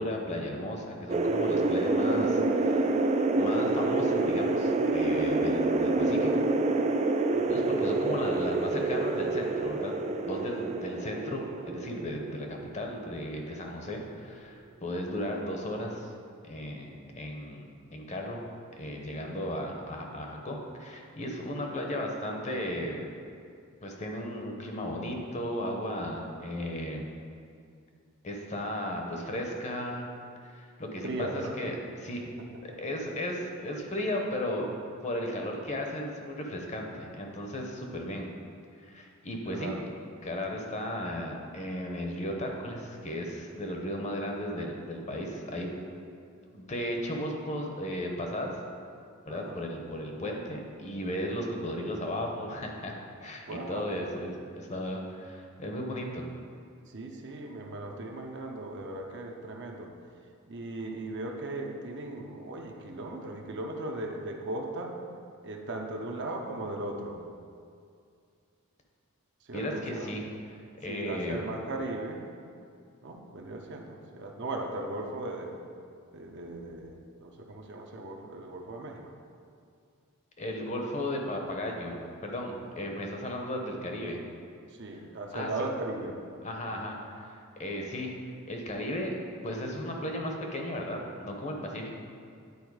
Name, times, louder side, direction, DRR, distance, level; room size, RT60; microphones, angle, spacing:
voice 1, 0.0-6.5 7.5-9.9 10.2-16.1 16.4-18.4 18.8-23.1 23.8-27.1 28.2-30.1 30.4-32.3 32.6-34.7 35.0-38.3 38.8-39.7 40.2-45.7 46.5-48.5 49.3-52.9 53.2-56.2 69.5-70.2 70.5-71.4 80.4-84.2 85.3-85.7 86.4-88.1 88.5-89.1 89.4-91.9, left 1 dB, 30° left, 1 dB, 0.8 m, -35 dB
sound 1, 1.1-13.5, right 2 dB, 30° right, 0.3 m, -27 dB
voice 2, 7.2-7.5 31.0-31.6 39.5-39.8 49.3-49.6 53.5-54.0 56.9-59.9 60.5-64.9 65.4-67.2 69.5-70.1 70.9-72.2 73.0-75.5 76.1-79.0 84.7-86.2, right 2 dB, 50° right, 1 dB, 0.7 m, -37 dB
9.7 x 4.3 x 4.8 m, 2.3 s
head